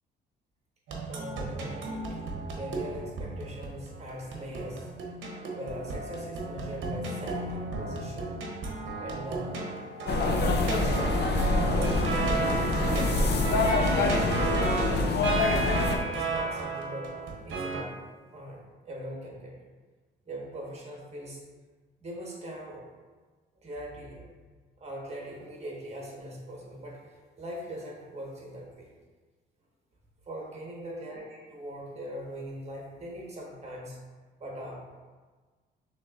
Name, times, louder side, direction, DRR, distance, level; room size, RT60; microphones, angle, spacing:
sound 1, 0.9-17.8, right 3 dB, 75° right, 0.8 m, -34 dB
voice 1, 1.1-2.2 2.5-4.9 5.5-8.4 9.0-9.5 10.2-12.5 12.8-14.5 14.8-15.4 16.0-17.9 18.3-19.5 20.3-21.4 22.0-22.9 23.6-24.4 24.8-28.9 30.3-34.0 34.4-34.8, equal, 30° right, -2 dB, 1.4 m, -41 dB
sound 2, 10.1-16.0, left 3 dB, 55° left, 0.6 m, -25 dB
6.2 x 3.1 x 2.5 m, 1.4 s
cardioid pair, 90°, 20 cm